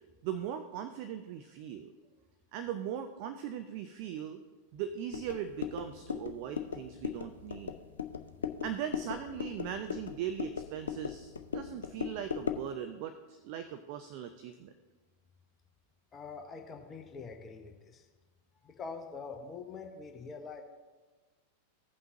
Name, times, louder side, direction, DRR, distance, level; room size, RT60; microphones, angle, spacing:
voice 1, 0.2-1.9 2.5-4.4 4.7-7.8 8.6-14.7, right 9 dB, 45° right, 9 dB, 0.5 m, -39 dB
sound 1, 5.1-12.7, left 7 dB, 70° left, 0.5 m, -38 dB
voice 2, 16.1-18.1 18.6-20.6, left 4 dB, 25° left, 3 dB, 1.0 m, -44 dB
16.5 x 5.6 x 2.9 m, 1.3 s
figure-of-eight pair, 90°, 0 cm